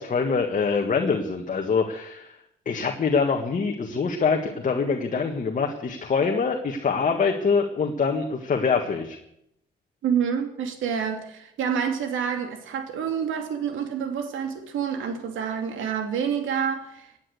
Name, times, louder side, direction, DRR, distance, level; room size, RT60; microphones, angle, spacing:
voice 1, 0.0-2.3 2.7-9.2, left 5 dB, 40° left, 3 dB, 1.7 m, -24 dB
voice 2, 10.0-17.1, right 7 dB, 80° right, 6 dB, 2.7 m, -28 dB
16.5 x 9.0 x 8.0 m, 0.78 s
cardioid pair, 90°, 20 cm